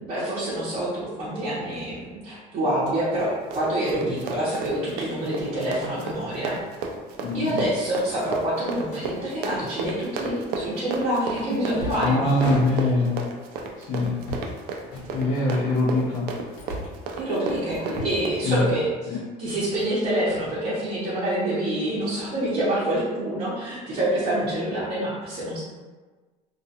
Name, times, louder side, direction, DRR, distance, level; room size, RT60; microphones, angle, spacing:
voice 1, 0.0-6.6 7.3-12.9 15.5-15.6 17.2-25.6, right 1 dB, 40° right, -11 dB, 0.8 m, -27 dB
sound 1, 2.7-3.0 4.5-4.7 5.6-5.9 6.3-6.5 6.8-7.0 7.3-7.4 8.1-9.1 10.2-10.6 11.3-13.2 14.0-14.6 14.9-15.6 16.1-17.1 17.7-18.3 18.6-19.1 19.4-20.0 20.3-21.1, left 1 dB, 70° left, 0.9 m, -39 dB
Run, 3.1-18.5, right 4 dB, 70° right, 0.4 m, -33 dB
voice 2, 7.2-7.5 12.0-13.2 13.8-14.1 15.1-16.2 18.4-18.6 19.1-19.2, left 2 dB, 55° left, -7 dB, 0.6 m, -23 dB
2.3 x 2.2 x 2.7 m, 1.3 s
cardioid pair, 140°, 17 cm